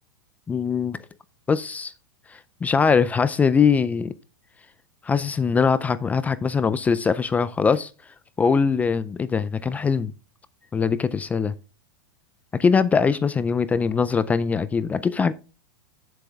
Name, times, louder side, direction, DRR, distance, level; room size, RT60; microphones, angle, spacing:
voice 1, 0.5-1.0 1.5-1.9 2.3-4.1 5.0-7.9 8.4-10.1 10.7-11.5 12.5-15.3, left 5 dB, 15° left, 0.4 m, -22 dB
9.0 x 7.6 x 3.5 m
supercardioid pair, 140°, 11 cm